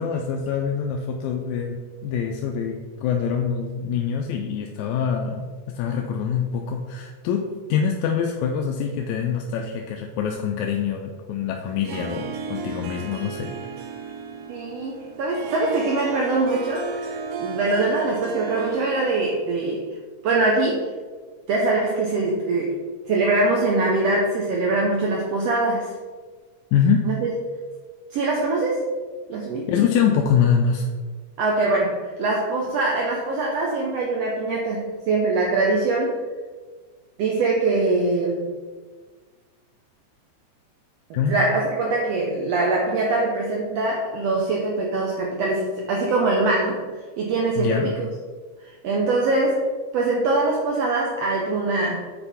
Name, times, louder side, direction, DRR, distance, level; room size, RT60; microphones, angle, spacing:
voice 1, 0.0-13.5 26.7-27.1 29.7-30.9 41.1-41.4 47.6-47.9, left 7 dB, 80° left, 2 dB, 1.9 m, -24 dB
Harp, 11.7-19.6, right 4 dB, 85° right, 2.3 m, -34 dB
voice 2, 14.5-19.9 20.2-20.8 21.5-25.9 27.0-27.3 28.1-28.8 29.3-29.7 31.4-36.2 37.2-38.5 41.1-46.8 47.2-48.1 48.6-49.7 49.9-52.0, right 2 dB, 70° right, -1 dB, 1.7 m, -23 dB
8.9 x 4.5 x 4.2 m, 1.4 s
omnidirectional pair, 3.4 m